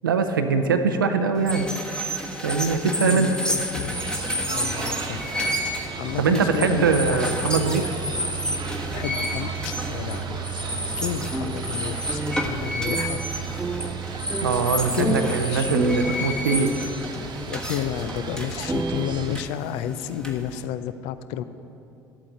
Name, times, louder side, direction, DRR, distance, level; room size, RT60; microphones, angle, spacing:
voice 1, 0.0-1.7 2.4-3.3 6.2-7.9 14.4-16.7, right 5 dB, 90° right, 7 dB, 0.5 m, -22 dB
sound 1, 1.4-20.6, equal, 10° left, 1.3 m, -31 dB
voice 2, 3.0-4.0 4.5-7.3 8.9-13.5 14.9-15.7 17.5-21.4, left 10 dB, 65° left, 13 dB, 0.4 m, -31 dB
sound 2, 3.9-19.4, right 6 dB, 45° right, 1.0 m, -34 dB
sound 3, 11.2-17.1 17.9-18.0 18.4-19.1, right 2 dB, 15° right, 0.5 m, -30 dB
12.5 x 8.2 x 3.8 m, 2.7 s
hypercardioid pair, 60°, 11 cm